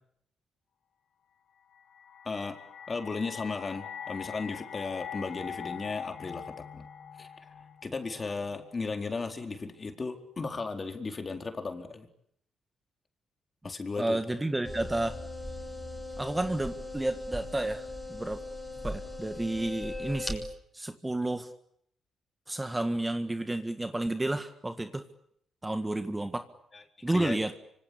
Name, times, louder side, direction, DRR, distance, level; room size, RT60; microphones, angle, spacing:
sound 1, 1.7-8.9, left 8 dB, 65° left, 2.4 m, -43 dB
voice 1, 2.9-6.8 7.2-7.3 7.8-12.1 13.6-14.2 26.7-27.4, left 4 dB, 30° left, 5 dB, 4.2 m, -35 dB
voice 2, 14.0-15.2 16.2-18.4 18.8-20.5 20.7-21.5 22.5-25.0 25.6-26.5 27.0-27.5, right 1 dB, 15° right, 8 dB, 1.8 m, -31 dB
sound 2, 14.6-20.3, left 2 dB, 5° left, 6.7 m, -39 dB
26.0 x 25.5 x 8.6 m, 0.72 s
cardioid pair, 90°, 0 cm